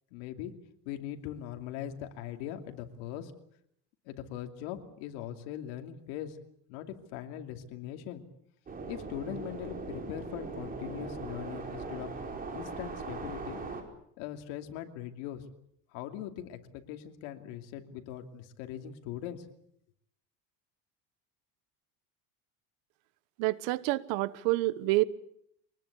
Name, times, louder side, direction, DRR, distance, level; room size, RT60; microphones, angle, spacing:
voice 1, 0.1-0.5 0.8-3.3 4.1-6.4 6.7-8.2 8.9-12.1 12.5-13.6 14.2-15.4 15.9-19.5, left 11 dB, 90° left, 2.8 m, -40 dB
sound 1, 8.7-13.8, right 3 dB, 25° right, 4.9 m, -40 dB
voice 2, 23.4-25.0, right 19 dB, 80° right, 1.2 m, -28 dB
24.5 x 20.0 x 8.3 m
cardioid pair, 135°, 34 cm